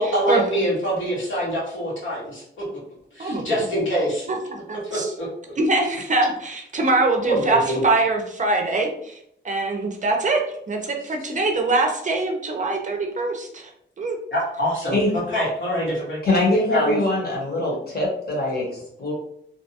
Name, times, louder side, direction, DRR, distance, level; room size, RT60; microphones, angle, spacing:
voice 1, 0.0-2.6 3.1-4.3 4.9-5.6 7.3-7.8 14.3-16.2 16.7-17.0, equal, 80° left, -6 dB, 1.3 m, -25 dB
voice 2, 3.2-3.6 4.3-4.4 4.7-5.1 5.6-9.2 9.4-10.4 10.7-13.7 14.0-14.2, right 2 dB, 40° right, 2 dB, 0.4 m, -23 dB
voice 3, 16.2-19.1, left 2 dB, 50° left, -3 dB, 1.0 m, -23 dB
2.6 x 2.1 x 2.7 m, 0.72 s
wide cardioid pair, 160°, 20 cm